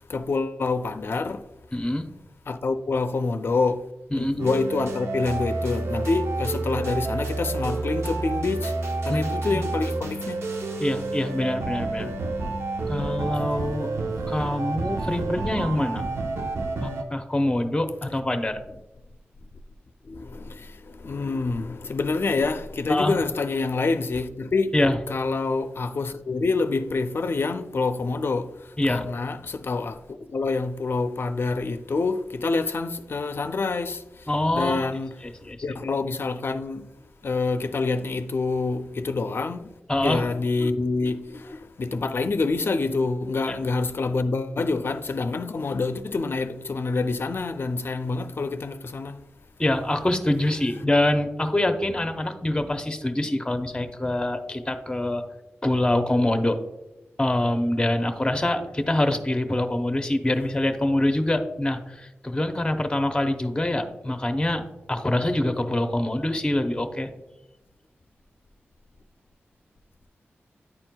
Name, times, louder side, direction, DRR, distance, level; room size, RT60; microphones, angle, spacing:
voice 1, 0.1-1.5 2.5-3.9 4.1-8.7 9.0-10.4 20.0-24.8 25.1-35.2 35.6-36.9 37.2-39.7 40.0-49.3 60.3-60.4, left 3 dB, 60° left, 0.4 m, -27 dB
voice 2, 1.7-2.1 4.1-4.4 9.1-9.6 10.8-12.1 12.9-13.9 14.3-16.0 16.8-18.6 22.9-23.1 24.7-25.0 28.8-29.1 34.3-34.9 35.4-35.6 39.9-40.3 43.5-43.6 49.6-55.2 55.6-56.6 57.2-64.6 64.9-67.1, left 1 dB, 20° left, 0.7 m, -25 dB
sound 1, 4.4-17.0, right 3 dB, 90° right, 0.6 m, -29 dB
9.9 x 4.4 x 2.2 m
cardioid pair, 50°, 4 cm